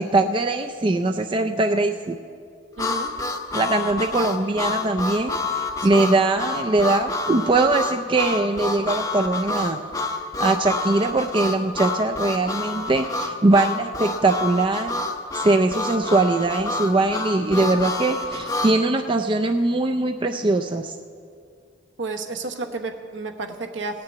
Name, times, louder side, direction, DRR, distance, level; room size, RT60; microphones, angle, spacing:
voice 1, 0.0-2.2 3.5-9.8 10.4-15.0 15.3-21.0, right 2 dB, 25° right, 5 dB, 0.4 m, -21 dB
Harmonica, 2.8-18.8, left 3 dB, 15° left, 0.7 m, -28 dB
voice 2, 2.8-3.1 5.8-6.1 22.0-24.0, right 3 dB, 70° right, 4 dB, 1.1 m, -32 dB
16.5 x 6.8 x 9.1 m, 2.3 s
head